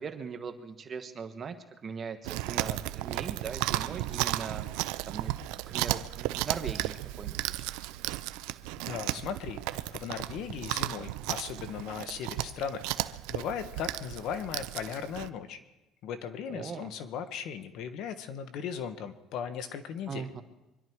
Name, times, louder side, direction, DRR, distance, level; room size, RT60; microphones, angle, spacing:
voice 1, 0.0-1.6 1.8-4.7 5.1-5.3 5.7-7.4 16.5-16.9 20.1-20.4, right 6 dB, 30° right, 7 dB, 1.4 m, -39 dB
Chewing mastication, 2.2-15.3, right 17 dB, 85° right, 0.5 m, -34 dB
voice 2, 8.8-15.6 16.0-20.2, left 7 dB, 60° left, 10 dB, 1.3 m, -37 dB
24.5 x 11.5 x 4.7 m, 1.0 s
cardioid pair, 135°, 0 cm